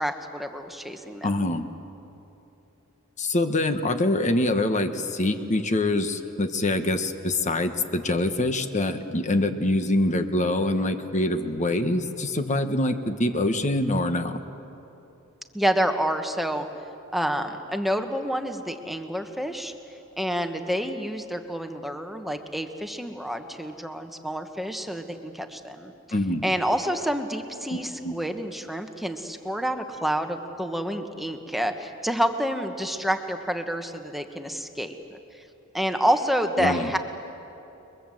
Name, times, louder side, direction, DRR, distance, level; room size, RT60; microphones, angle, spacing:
voice 1, 0.0-1.3 15.5-16.6 17.1-19.7 20.2-25.9 26.4-35.2 35.7-37.0, equal, ahead, 6 dB, 1.3 m, -28 dB
voice 2, 1.2-1.7 3.2-14.4 26.1-26.5 27.7-28.2 36.6-36.9, left 1 dB, 35° left, 8 dB, 1.3 m, -25 dB
29.5 x 22.5 x 7.8 m, 3.0 s
head